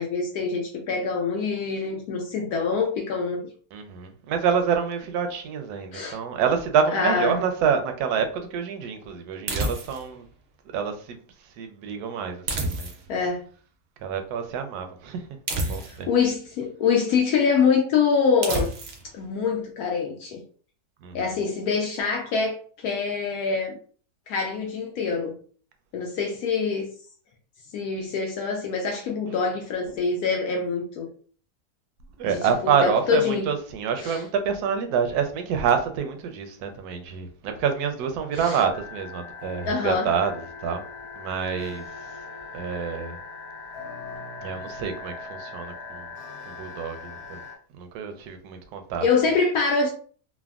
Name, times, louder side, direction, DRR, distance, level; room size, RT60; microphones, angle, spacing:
voice 1, 0.0-3.4 5.9-6.2 6.9-7.4 13.1-13.5 15.6-18.7 19.1-20.4 21.1-23.8 24.3-25.3 25.9-26.9 27.7-31.1 32.2-33.5 34.0-34.2 38.3-38.6 39.7-40.1 49.0-49.9, left 5 dB, 75° left, 1.0 m, -25 dB
voice 2, 3.7-10.2 10.7-11.2 11.6-12.9 14.0-15.2 15.7-16.1 21.0-21.3 32.2-40.8 41.2-41.8 42.5-43.2 44.4-46.1 46.5-47.4 47.8-49.1, right 7 dB, 80° right, 1.1 m, -27 dB
sound 1, 9.5-10.1 12.5-13.2 15.5-16.2 18.4-19.1, right 2 dB, 65° right, 0.6 m, -29 dB
sound 2, 38.7-47.6, left 4 dB, 50° left, 0.9 m, -40 dB
3.4 x 2.1 x 2.3 m
omnidirectional pair, 1.7 m